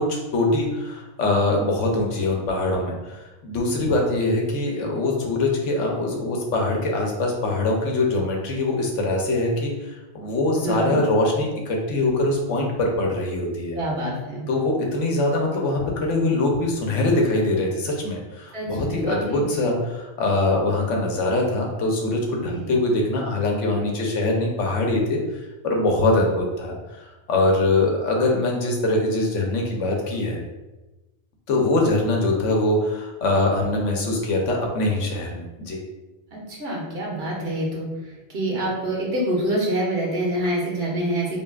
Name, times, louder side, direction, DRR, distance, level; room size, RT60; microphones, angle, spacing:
voice 1, 0.0-13.8 14.5-30.4 31.5-35.8, left 2 dB, 75° left, 0 dB, 1.1 m, -23 dB
voice 2, 10.6-11.0 13.7-14.4 18.5-19.6 22.4-22.7 36.3-37.9 38.3-41.4, right 1 dB, 55° right, -3 dB, 1.2 m, -26 dB
5.1 x 2.5 x 2.4 m, 1.1 s
omnidirectional pair, 1.3 m